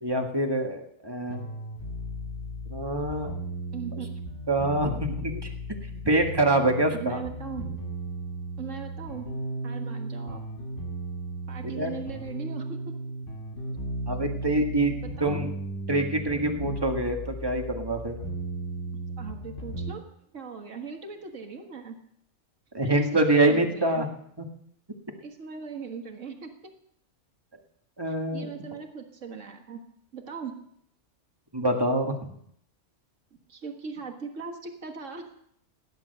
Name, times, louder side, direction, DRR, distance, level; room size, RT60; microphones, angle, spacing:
voice 1, 0.0-1.5 2.7-3.3 4.5-5.5 5.9-7.2 11.7-11.9 14.1-15.5 15.9-18.1 22.7-24.1 28.0-28.5 31.5-32.3, right 1 dB, 20° right, 3 dB, 1.8 m, -25 dB
sound 1, 1.3-19.9, right 1 dB, 70° left, 3.3 m, -36 dB
voice 2, 3.7-4.1 6.9-7.7 8.6-9.3 9.6-10.4 11.5-13.0 14.8-15.5 19.2-20.0 20.3-22.0 22.8-24.1 25.2-26.5 28.1-29.8 30.1-30.5 33.5-35.2, right 5 dB, 80° right, 4 dB, 2.0 m, -39 dB
17.5 x 10.5 x 6.7 m, 0.71 s
omnidirectional pair, 1.3 m